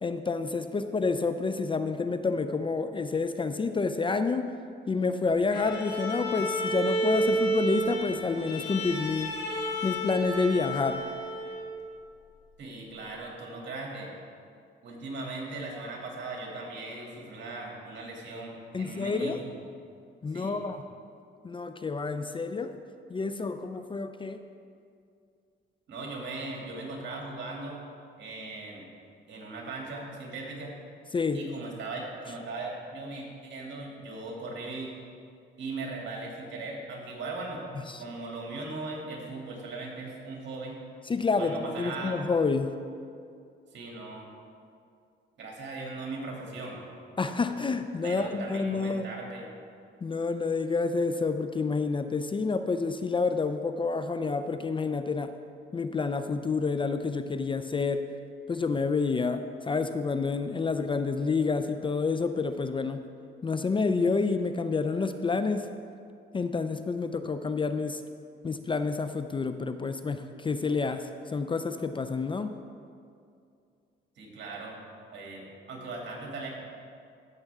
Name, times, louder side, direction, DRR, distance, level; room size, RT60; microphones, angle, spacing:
voice 1, 0.0-4.5 4.9-9.3 9.8-11.0 18.7-19.4 20.2-20.8 21.4-22.7 23.1-24.4 31.1-31.4 37.9-38.0 41.1-42.7 47.2-49.1 50.0-55.3 55.7-58.0 58.5-63.0 63.4-65.7 66.3-68.0 68.4-72.5, left 4 dB, 25° left, 9 dB, 0.4 m, -29 dB
Bowed string instrument, 5.5-11.8, right 1 dB, 55° left, 2.0 m, -31 dB
voice 2, 12.6-14.1 14.8-19.5 20.3-20.6 25.9-27.8 28.2-28.9 29.3-30.7 31.3-34.9 35.6-37.6 38.0-40.8 41.4-42.2 43.7-44.3 45.4-46.8 48.0-49.5 74.2-74.7 75.1-76.5, right 3 dB, 65° right, -2 dB, 2.5 m, -38 dB
14.5 x 6.7 x 3.6 m, 2.4 s
cardioid pair, 90°, 20 cm